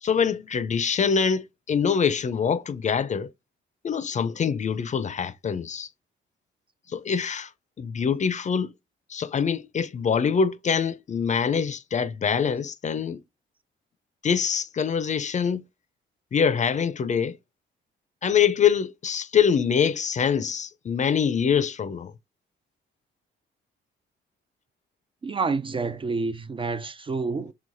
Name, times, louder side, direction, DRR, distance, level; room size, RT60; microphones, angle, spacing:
voice 1, 0.0-3.3 3.8-5.9 6.9-7.5 7.8-8.7 9.1-13.2 14.2-15.6 16.3-17.4 18.2-22.1, left 7 dB, 35° left, 0.5 m, -24 dB
voice 2, 25.2-27.5, right 4 dB, 25° right, 0.4 m, -28 dB
4.8 x 3.4 x 2.5 m
cardioid pair, 90°, 20 cm